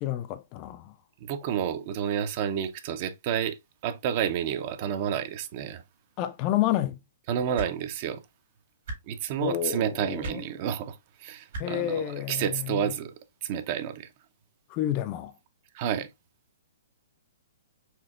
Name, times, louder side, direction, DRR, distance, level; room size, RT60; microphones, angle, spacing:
voice 1, 0.0-0.9 6.2-7.0 9.4-10.4 11.6-12.9 14.7-15.3, left 12 dB, 35° left, 0.3 m, -30 dB
voice 2, 1.2-3.6 3.8-5.8 7.3-8.2 9.1-11.0 11.2-13.1 13.4-14.1 15.7-16.1, right 9 dB, 40° right, 0.5 m, -30 dB
sound 1, 7.5-7.7 8.8-9.0 10.2-10.4 11.5-11.6 12.9-13.0, right 2 dB, 60° right, 1.7 m, -35 dB
4.4 x 2.7 x 2.3 m
hypercardioid pair, 145°, 0 cm